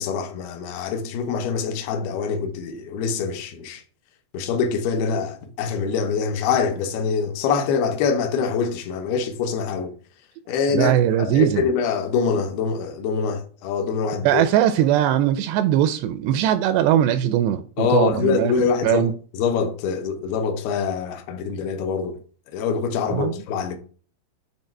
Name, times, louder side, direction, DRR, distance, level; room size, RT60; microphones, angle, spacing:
voice 1, 0.0-3.8 4.3-9.9 10.5-14.4 17.8-19.0 19.3-22.2 22.5-23.8, left 5 dB, 70° left, 2.7 m, -24 dB
voice 2, 10.7-11.7 14.2-18.5 18.8-19.1 23.1-23.4, right 11 dB, 85° right, 2.5 m, -20 dB
9.1 x 3.4 x 5.8 m
omnidirectional pair, 5.1 m